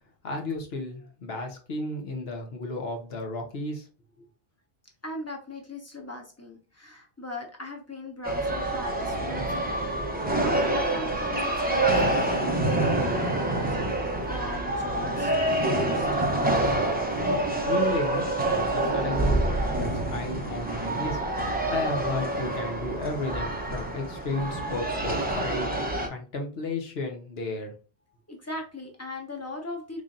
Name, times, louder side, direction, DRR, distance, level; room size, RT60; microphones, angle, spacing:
voice 1, 0.2-3.9 17.7-25.7 26.1-27.7, left 2 dB, 80° left, 3 dB, 1.2 m, -33 dB
voice 2, 5.0-17.1 28.3-30.0, left 2 dB, 15° left, 2 dB, 0.9 m, -40 dB
sound 1, 8.2-26.1, right 2 dB, 10° right, 0.5 m, -27 dB
3.9 x 3.2 x 2.5 m, 0.37 s
omnidirectional pair, 1.0 m